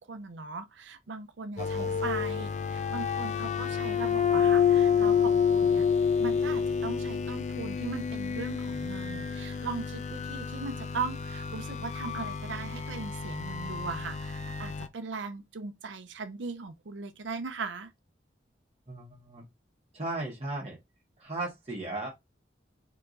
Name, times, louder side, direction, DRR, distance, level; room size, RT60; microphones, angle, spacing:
voice 1, 0.0-5.8 6.2-17.9, right 4 dB, 90° right, 0.6 m, -39 dB
sound 1, 1.6-14.9, left 7 dB, 40° left, 0.4 m, -29 dB
voice 2, 1.6-2.0 18.9-19.4 19.9-20.8 21.2-22.1, right 2 dB, 35° right, 1.2 m, -36 dB
4.5 x 3.0 x 2.5 m
head